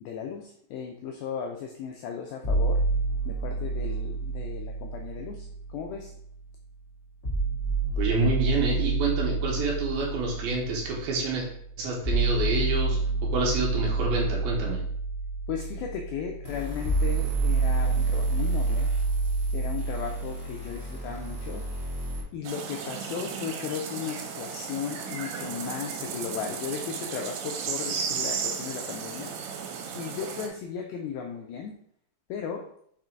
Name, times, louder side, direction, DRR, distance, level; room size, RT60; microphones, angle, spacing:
voice 1, 0.0-2.8 3.3-6.1 15.5-18.9 19.5-21.6 22.3-29.3 30.0-31.8 32.3-32.7, left 7 dB, 85° left, 3 dB, 2.1 m, -36 dB
sound 1, 2.4-6.4 7.2-21.3, right 3 dB, 30° left, 1.3 m, -28 dB
voice 2, 8.0-11.5 11.8-14.8, right 3 dB, 70° right, -1 dB, 2.6 m, -28 dB
sound 2, 16.4-22.2, equal, 30° right, 1.2 m, -38 dB
sound 3, 22.4-30.5, right 6 dB, 85° right, 3.0 m, -34 dB
6.3 x 3.8 x 4.5 m, 0.66 s
omnidirectional pair, 5.0 m